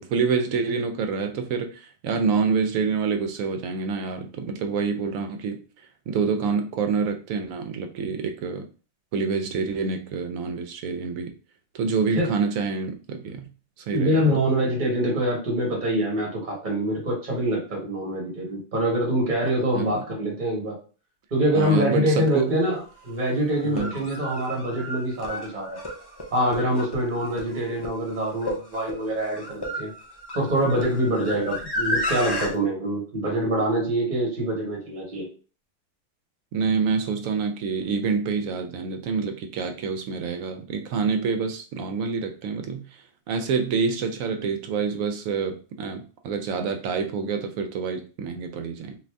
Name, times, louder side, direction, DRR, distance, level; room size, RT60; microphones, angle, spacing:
voice 1, 0.0-8.7 9.1-11.3 11.7-13.5 13.8-14.4 19.7-20.0 21.5-22.5 23.6-24.0 36.5-49.0, right 5 dB, 90° right, 6 dB, 1.0 m, -27 dB
voice 2, 13.9-20.8 21.3-22.8 23.0-25.8 26.3-29.9 30.3-35.3, equal, 40° right, -2 dB, 1.3 m, -25 dB
sound 1, 22.5-22.6 23.6-32.5, left 1 dB, 30° left, 0.5 m, -32 dB
2.7 x 2.5 x 3.3 m, 0.36 s
omnidirectional pair, 1.4 m